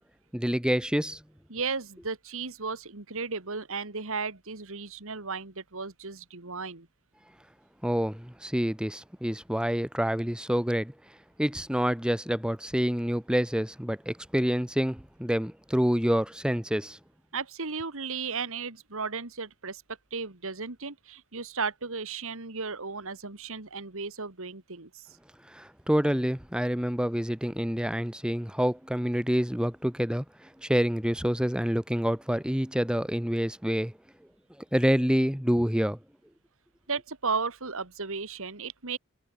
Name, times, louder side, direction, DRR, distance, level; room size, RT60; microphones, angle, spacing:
voice 1, 0.3-1.2 7.8-10.9 11.4-17.0 25.5-33.9 34.7-36.0, equal, 5° right, 1.5 m, -27 dB
voice 2, 1.5-6.9 17.3-19.8 20.1-24.9 36.9-39.0, right 4 dB, 65° right, 2.2 m, -35 dB
head